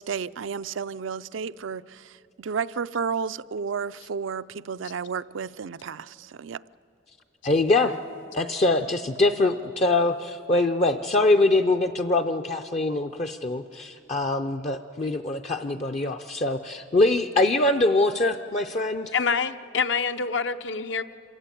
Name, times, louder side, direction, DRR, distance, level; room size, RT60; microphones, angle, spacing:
voice 1, 0.0-6.6, right 6 dB, 80° right, 0.5 m, -32 dB
voice 2, 7.4-8.0 8.3-19.1, left 2 dB, 35° left, 0.5 m, -23 dB
voice 3, 19.1-21.0, left 5 dB, 65° left, 0.8 m, -26 dB
27.0 x 15.5 x 9.1 m
head